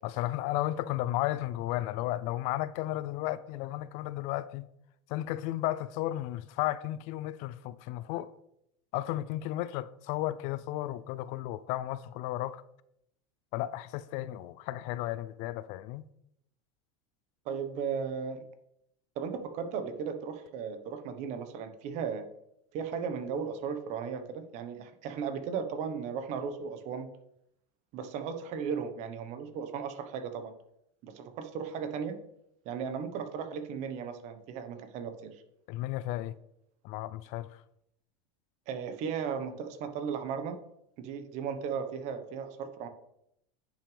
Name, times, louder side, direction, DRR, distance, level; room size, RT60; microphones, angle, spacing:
voice 1, 0.0-4.7 5.1-8.3 8.9-12.6 13.5-16.1 35.7-36.3 36.8-37.5, left 15 dB, 50° left, 0.4 m, -34 dB
voice 2, 17.4-18.4 19.2-22.2 22.7-27.1 27.9-30.5 31.0-32.1 32.6-35.4 38.7-40.6 41.0-42.9, right 6 dB, 50° right, 1.2 m, -36 dB
9.9 x 6.0 x 3.4 m
supercardioid pair, 135°, 15 cm